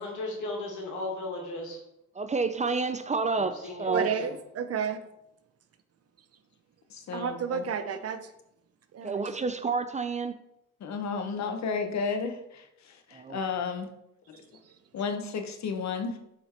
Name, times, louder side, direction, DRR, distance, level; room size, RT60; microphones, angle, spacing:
voice 1, 0.0-1.8 3.4-4.3, left 2 dB, 80° left, -1 dB, 2.4 m, -36 dB
voice 2, 2.2-4.1 9.0-10.3 13.1-13.4, right 4 dB, 25° right, 11 dB, 0.4 m, -29 dB
voice 3, 3.9-5.0 7.1-8.2 8.9-9.2, right 7 dB, 55° right, 10 dB, 0.8 m, -31 dB
voice 4, 6.9-7.6 10.8-13.9 14.3-14.4 14.9-16.2, left 5 dB, 65° left, 6 dB, 1.1 m, -33 dB
7.7 x 4.5 x 4.4 m, 0.83 s
cardioid pair, 90°, 30 cm